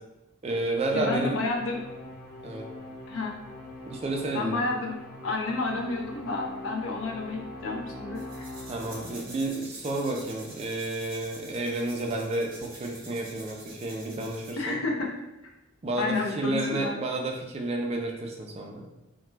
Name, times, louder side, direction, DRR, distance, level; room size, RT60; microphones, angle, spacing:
voice 1, 0.4-1.4 2.4-2.7 3.9-4.6 8.7-14.8 15.8-18.8, right 2 dB, 30° right, 1 dB, 0.3 m, -31 dB
voice 2, 0.9-1.8 3.1-3.4 4.3-8.5 14.6-15.1 16.0-17.0, left 3 dB, 70° left, 1 dB, 0.5 m, -30 dB
Musical instrument, 0.9-9.5, left 2 dB, 5° left, 0.9 m, -41 dB
sound 1, 8.1-14.6, right 2 dB, 45° right, 0.7 m, -47 dB
2.2 x 2.1 x 3.1 m, 0.98 s
head